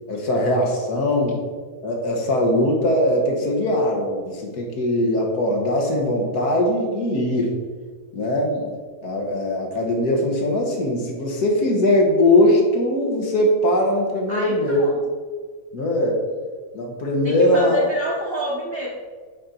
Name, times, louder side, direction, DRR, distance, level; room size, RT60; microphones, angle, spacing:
voice 1, 0.1-1.4 1.8-7.6 8.1-8.7 9.0-14.8 15.7-16.2 16.7-17.8, left 1 dB, 75° left, 0 dB, 1.8 m, -20 dB
voice 2, 14.3-15.0 17.2-18.9, equal, 45° right, -4 dB, 1.1 m, -28 dB
8.5 x 3.9 x 4.3 m, 1.5 s
omnidirectional pair, 1.7 m